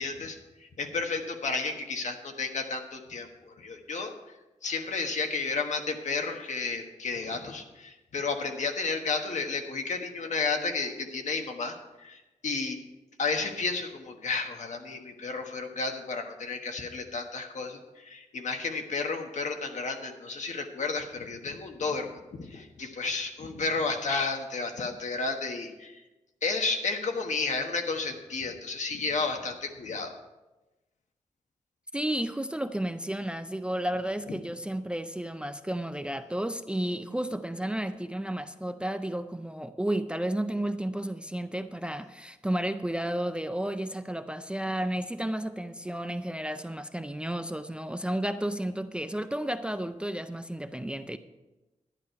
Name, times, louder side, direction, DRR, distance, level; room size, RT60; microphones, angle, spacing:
voice 1, 0.0-4.1 4.6-12.8 13.2-26.0 26.4-30.1 34.3-34.4, left 4 dB, 65° left, 4 dB, 1.3 m, -32 dB
voice 2, 31.9-51.2, right 1 dB, 10° right, 10 dB, 0.4 m, -32 dB
11.0 x 11.0 x 4.6 m, 1.1 s
wide cardioid pair, 160°, 13 cm